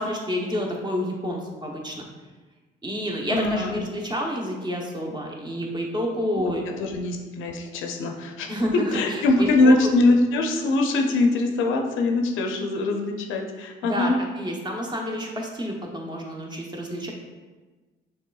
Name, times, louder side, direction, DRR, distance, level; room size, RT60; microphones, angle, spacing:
voice 1, 0.0-2.1 2.8-6.6 8.5-9.8 13.8-17.1, equal, 20° right, 0 dB, 0.8 m, -29 dB
voice 2, 3.3-3.8 6.3-6.5 6.8-8.5 8.9-14.2, left 2 dB, 85° left, 3 dB, 0.6 m, -22 dB
5.5 x 3.3 x 2.3 m, 1.3 s
cardioid pair, 90°, 20 cm